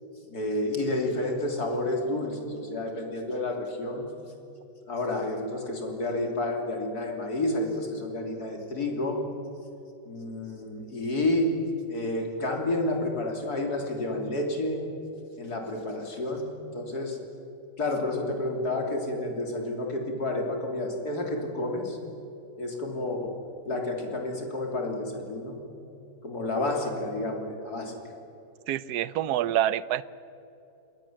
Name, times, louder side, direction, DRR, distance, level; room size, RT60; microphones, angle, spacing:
voice 1, 0.3-4.1 4.9-9.2 10.1-11.5 11.9-14.8 15.4-17.2 17.8-22.0 22.6-23.3 23.7-25.6 26.2-27.9, left 2 dB, 60° left, 2 dB, 3.8 m, -30 dB
voice 2, 28.7-30.0, right 12 dB, 70° right, 18 dB, 1.2 m, -26 dB
27.5 x 21.0 x 7.6 m, 3.0 s
omnidirectional pair, 1.8 m